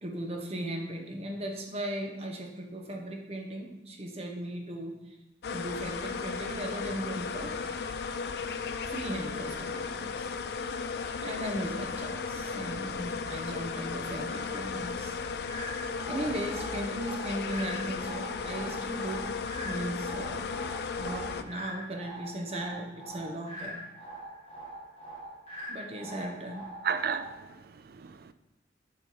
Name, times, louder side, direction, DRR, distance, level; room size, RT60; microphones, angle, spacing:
voice 1, 0.0-5.0 5.5-7.5 8.9-10.3 11.2-15.2 16.1-19.3 19.6-20.6 21.0-23.8 25.7-26.7, right 1 dB, 35° right, 0.9 m, -37 dB
sound 1, 5.4-21.4, left 5 dB, 55° left, 0.3 m, -35 dB
sound 2, 15.5-27.5, right 1 dB, 30° left, 2.2 m, -43 dB
voice 2, 26.8-28.3, right 6 dB, 55° right, 0.4 m, -34 dB
7.0 x 4.2 x 4.6 m
head